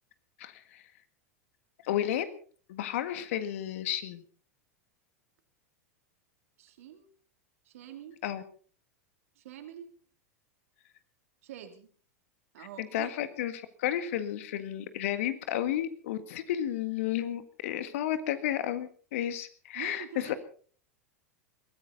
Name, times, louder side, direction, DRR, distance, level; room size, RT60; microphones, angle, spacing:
voice 1, 0.4-0.8 1.8-2.4 2.7-4.2 8.2-8.4 12.6-20.3, left 11 dB, 60° left, 11 dB, 1.8 m, -32 dB
voice 2, 6.6-7.1 7.6-8.2 9.4-9.9 11.4-11.9 12.5-13.1 19.7-20.4, right 10 dB, 65° right, 7 dB, 2.9 m, -45 dB
22.0 x 15.0 x 4.1 m, 0.43 s
figure-of-eight pair, 90°, 8 cm